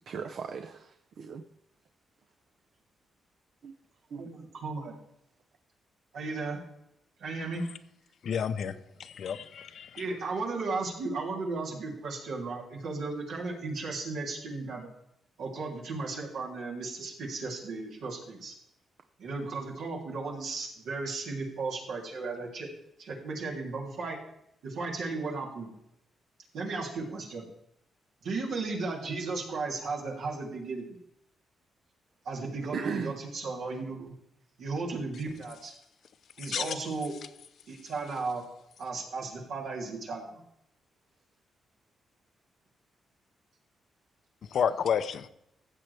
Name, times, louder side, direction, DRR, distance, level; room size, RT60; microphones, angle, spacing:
voice 1, 0.1-1.4 3.6-3.7 4.1-4.2 8.7-8.8 32.7-33.2, right 6 dB, 60° right, 0.7 m, -36 dB
voice 2, 4.2-4.9 6.1-6.6 7.2-7.6 10.0-14.9 15.4-18.5 19.2-22.7 23.0-24.2 24.6-25.7 26.5-27.5 28.2-31.0 32.2-34.1 34.6-35.7 36.4-37.1 37.7-38.4 38.8-40.4, right 3 dB, 80° right, 3.0 m, -35 dB
voice 3, 8.2-8.7 9.0-10.0 36.4-36.8 44.5-45.3, left 7 dB, 60° left, 0.6 m, -30 dB
15.5 x 7.7 x 3.4 m
cardioid pair, 140°, 0 cm